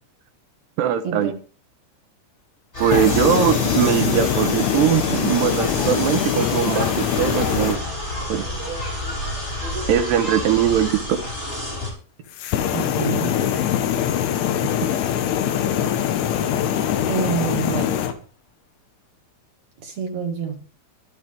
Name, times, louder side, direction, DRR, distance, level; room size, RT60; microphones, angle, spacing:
voice 1, 0.8-1.3 2.8-7.9 8.3-8.5 9.9-11.2, right 9 dB, 70° right, 2.9 m, -21 dB
sound 1, 2.7-11.9, left 1 dB, 15° left, 6.1 m, -29 dB
sound 2, 2.8-7.8 12.3-18.1, left 10 dB, 90° left, 3.7 m, -23 dB
voice 2, 12.7-13.4 17.1-18.0 19.8-20.6, right 7 dB, 50° right, 2.2 m, -27 dB
24.5 x 8.4 x 3.6 m
omnidirectional pair, 5.5 m